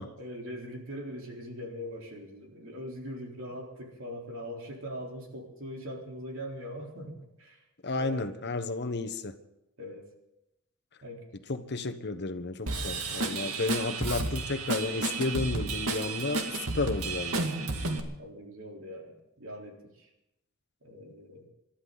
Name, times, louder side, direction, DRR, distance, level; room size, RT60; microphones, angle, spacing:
voice 1, 0.2-7.6 7.9-8.3 9.8-10.1 11.0-11.3 18.2-20.1 20.8-21.5, equal, 65° right, 0 dB, 3.8 m, -41 dB
voice 2, 7.8-9.3 11.5-17.5, left 3 dB, 50° left, 8 dB, 1.1 m, -32 dB
Drum kit / Drum, 12.7-18.0, right 3 dB, 85° right, 2.1 m, -32 dB
27.5 x 13.0 x 4.0 m, 0.87 s
head